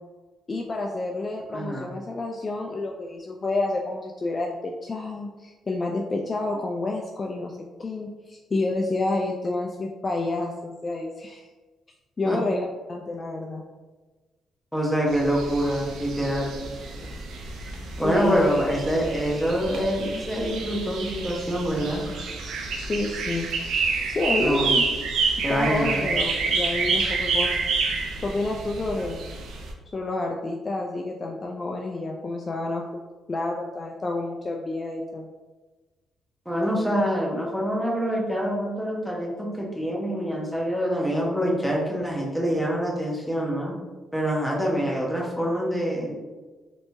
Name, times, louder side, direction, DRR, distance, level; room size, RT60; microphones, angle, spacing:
voice 1, 0.5-11.5 12.2-13.6 18.0-18.5 22.8-23.5 24.1-24.9 25.5-27.6 28.2-29.2 29.9-35.3, left 2 dB, 30° left, 0 dB, 0.3 m, -29 dB
voice 2, 1.5-1.9 12.2-12.4 14.7-16.8 18.0-22.0 24.4-24.7 25.4-26.1 36.5-43.7 44.1-46.1, equal, ahead, -3 dB, 0.9 m, -25 dB
sound 1, 15.1-29.7, right 4 dB, 75° right, 0.5 m, -29 dB
3.2 x 3.0 x 2.7 m, 1.3 s
cardioid pair, 90°, 0 cm